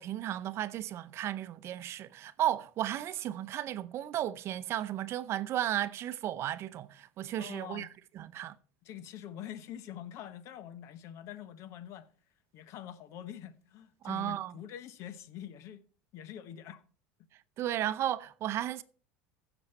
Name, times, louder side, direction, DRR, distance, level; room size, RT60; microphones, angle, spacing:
voice 1, 0.0-7.9 8.2-8.6 14.0-14.5 17.6-18.8, right 12 dB, 50° right, 0.7 m, -34 dB
voice 2, 7.4-7.9 8.8-12.1 12.5-15.8 16.1-16.8, left 10 dB, 55° left, 1.0 m, -45 dB
15.0 x 7.1 x 4.2 m
hypercardioid pair, 85°, 6 cm